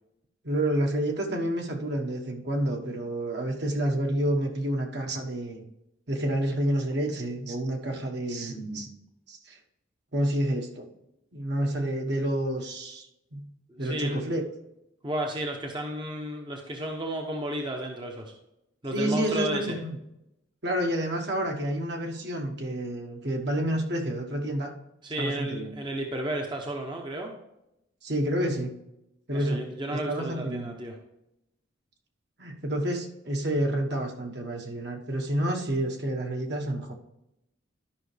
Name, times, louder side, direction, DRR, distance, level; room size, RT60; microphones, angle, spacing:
voice 1, 0.4-5.6 6.1-8.9 9.3-9.6 10.1-10.9 11.3-13.1 13.3-13.5 13.8-14.4 18.9-19.9 20.6-24.7 25.2-25.7 28.0-28.7 29.3-30.7 32.4-36.9, right 1 dB, 60° right, 2 dB, 1.3 m, -29 dB
voice 2, 13.7-14.2 15.0-18.3 18.8-19.8 25.0-27.3 29.3-30.9, right 1 dB, 25° right, 2 dB, 0.8 m, -33 dB
11.5 x 5.7 x 3.3 m, 0.85 s
head